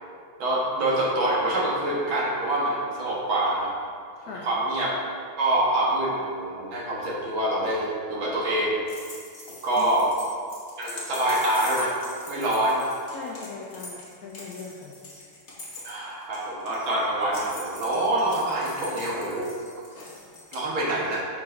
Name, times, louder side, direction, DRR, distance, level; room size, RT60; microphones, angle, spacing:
voice 1, 0.4-3.7 4.3-5.0 5.4-8.8 9.6-10.1 10.8-11.9 12.3-12.8 15.8-19.5 20.5-21.2, right 1 dB, 65° right, -5 dB, 2.2 m, -25 dB
sound 1, 8.9-20.6, left 2 dB, 35° left, 1.4 m, -42 dB
voice 2, 13.1-14.9, left 5 dB, 85° left, -2 dB, 0.8 m, -39 dB
6.2 x 4.8 x 5.1 m, 2.2 s
omnidirectional pair, 2.4 m